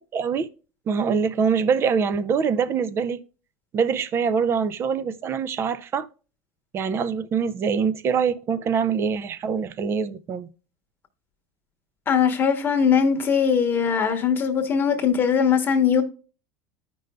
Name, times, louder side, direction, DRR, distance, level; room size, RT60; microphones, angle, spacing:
voice 1, 0.1-0.5 0.9-3.2 3.7-6.1 6.7-10.5, right 6 dB, 30° right, 0.5 m, -24 dB
voice 2, 12.1-16.0, left 7 dB, 25° left, 1.1 m, -20 dB
14.0 x 5.3 x 2.2 m
cardioid pair, 150°, 9 cm